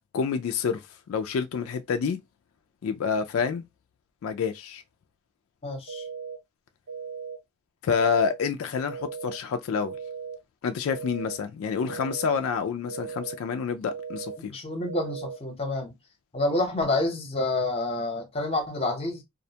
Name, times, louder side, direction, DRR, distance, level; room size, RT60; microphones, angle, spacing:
voice 1, 0.1-2.2 2.8-3.7 4.2-4.8 7.8-9.9 10.6-14.5, left 6 dB, 80° left, 0.3 m, -28 dB
voice 2, 5.6-6.0 14.5-15.9 16.3-19.2, left 2 dB, 30° left, 0.7 m, -28 dB
sound 1, 5.9-6.4 6.9-7.4 7.9-8.4 8.9-9.4 9.9-10.4 10.9-11.4 11.9-12.4 12.9-13.4 13.9-14.4 14.9-15.4, right 5 dB, 80° right, 0.5 m, -37 dB
2.4 x 2.1 x 2.7 m
head